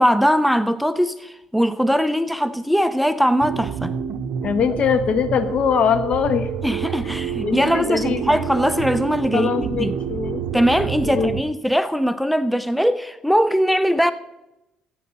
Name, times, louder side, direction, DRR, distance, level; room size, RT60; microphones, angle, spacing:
voice 1, 0.0-4.0 6.6-10.0 10.5-14.1, equal, ahead, 0.4 m, -20 dB
sound 1, 3.4-11.4, right 8 dB, 75° right, 0.6 m, -28 dB
voice 2, 4.4-6.5 7.4-8.4 9.3-10.4 11.0-11.4, left 7 dB, 55° left, 1.1 m, -22 dB
14.0 x 8.4 x 4.1 m
cardioid pair, 110°, 2 cm